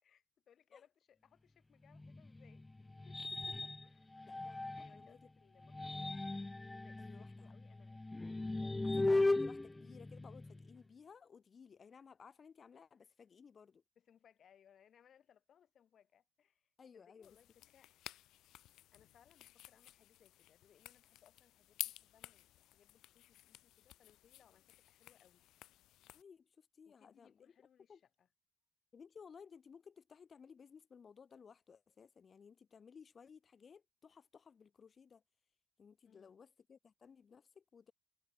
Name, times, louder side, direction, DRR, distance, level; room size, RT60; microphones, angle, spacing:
voice 1, 0.0-3.2 3.8-4.3 4.7-6.2 6.4-8.0 8.6-9.0 14.0-17.9 18.9-25.5 26.8-28.3 36.0-36.4, left 9 dB, 60° left, 5.0 m, -69 dB
sound 1, 1.9-5.1 5.6-10.8, left 2 dB, 15° left, 0.3 m, -38 dB
voice 2, 4.2-5.3 7.0-7.5 8.8-13.8 16.8-17.4 26.1-27.4 27.9-28.0 28.9-35.2 35.8-37.9, left 6 dB, 45° left, 1.6 m, -59 dB
sound 2, 17.2-26.2, left 14 dB, 85° left, 0.6 m, -52 dB
cardioid pair, 90°, 0 cm